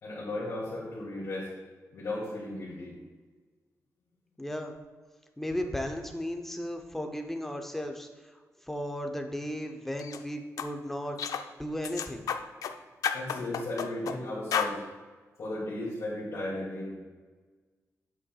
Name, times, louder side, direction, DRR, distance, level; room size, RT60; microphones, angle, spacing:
voice 1, 0.0-1.5 1.9-2.9 13.1-14.8 15.4-16.9, left 1 dB, 60° left, -9 dB, 2.4 m, -35 dB
voice 2, 4.4-4.8 5.4-8.3 8.6-12.3, equal, 5° left, 4 dB, 0.7 m, -35 dB
sound 1, 10.0-10.2 10.6-10.7 11.2-11.5 11.8-12.7 13.0-14.2 14.5-14.8, left 7 dB, 80° left, 0.5 m, -31 dB
10.0 x 8.3 x 2.4 m, 1.4 s
wide cardioid pair, 165°, 6 cm